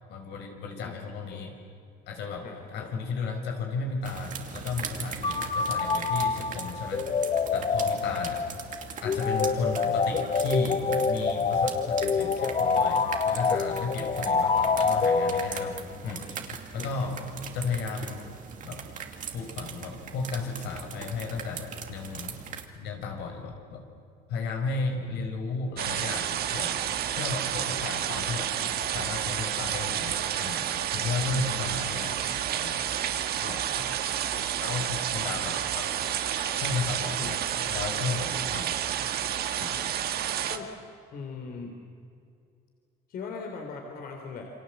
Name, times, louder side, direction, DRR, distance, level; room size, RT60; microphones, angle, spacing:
voice 1, 0.1-1.5 2.1-7.1 7.5-8.5 9.0-15.8 16.0-16.3 16.7-17.2 17.5-18.2 18.6-18.8 19.3-22.4 22.7-23.9 24.3-28.6 28.9-30.7 30.9-32.2 32.6-32.8 33.4-33.9 34.6-35.9 36.5-37.4 37.7-38.8 39.6-39.8, left 4 dB, 80° left, 3 dB, 5.2 m, -34 dB
voice 2, 2.4-2.9 16.8-17.2 25.0-25.1 31.2-31.5 33.4-33.5 34.3-34.5 36.6-36.7 37.2-37.4 38.4-38.5 40.5-40.7 41.1-41.8 43.1-44.5, left 5 dB, 60° left, 3 dB, 3.5 m, -40 dB
sound 1, 4.0-22.6, right 7 dB, 50° right, 2.7 m, -41 dB
sound 2, 5.2-16.0, left 5 dB, 35° left, 1.3 m, -26 dB
sound 3, 25.8-40.6, right 10 dB, 65° right, 1.8 m, -30 dB
29.0 x 24.5 x 7.9 m, 2.4 s
cardioid pair, 110°, 17 cm